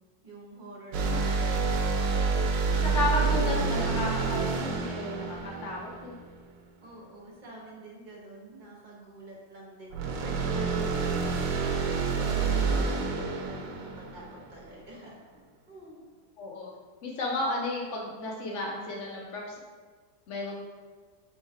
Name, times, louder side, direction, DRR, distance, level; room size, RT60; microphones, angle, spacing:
voice 1, 0.2-1.8 6.8-15.2 15.7-16.0, right 2 dB, 45° right, -3 dB, 0.6 m, -47 dB
sound 1, 0.9-6.4 9.9-14.7, right 4 dB, 80° right, 1.2 m, -28 dB
voice 2, 2.7-6.1 16.4-16.7 17.0-19.6 20.3-20.6, left 2 dB, 65° left, -2 dB, 0.7 m, -33 dB
3.3 x 3.1 x 4.5 m, 1.4 s
omnidirectional pair, 1.9 m